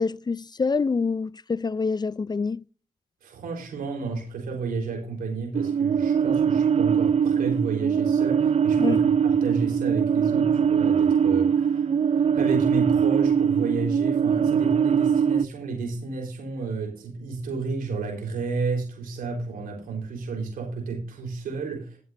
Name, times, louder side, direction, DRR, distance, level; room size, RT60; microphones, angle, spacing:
voice 1, 0.0-2.6 8.8-9.1, left 4 dB, 30° left, 0.4 m, -26 dB
voice 2, 3.2-22.0, right 4 dB, 90° right, 4.0 m, -31 dB
sound 1, 5.5-15.4, right 7 dB, 45° right, 0.4 m, -22 dB
15.5 x 7.9 x 2.6 m
supercardioid pair, 50°, 14 cm